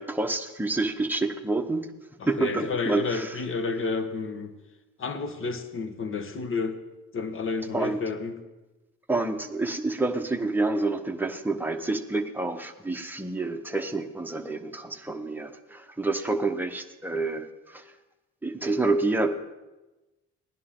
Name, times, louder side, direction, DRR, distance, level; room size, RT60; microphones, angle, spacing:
voice 1, 0.0-1.9 2.3-3.4 7.7-8.0 9.1-17.9 18.4-19.3, right 2 dB, 5° right, 5 dB, 1.0 m, -28 dB
voice 2, 2.2-4.5 5.0-6.8 7.1-8.4, left 4 dB, 45° left, 8 dB, 1.3 m, -31 dB
16.5 x 11.0 x 3.8 m, 1.1 s
cardioid pair, 90°, 30 cm